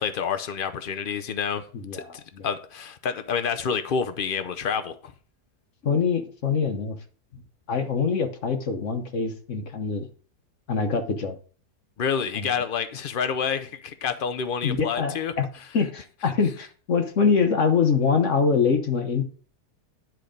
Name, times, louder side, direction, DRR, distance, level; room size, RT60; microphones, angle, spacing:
voice 1, 0.0-1.6 1.9-5.0 12.0-15.6, left 6 dB, 70° left, 0.5 m, -28 dB
voice 2, 1.7-2.1 2.3-2.5 5.8-7.0 7.3-7.4 7.7-10.1 10.7-11.4 12.3-12.5 14.6-15.5 15.7-19.2, left 5 dB, 50° left, 1.2 m, -24 dB
10.5 x 4.6 x 5.1 m
omnidirectional pair, 1.7 m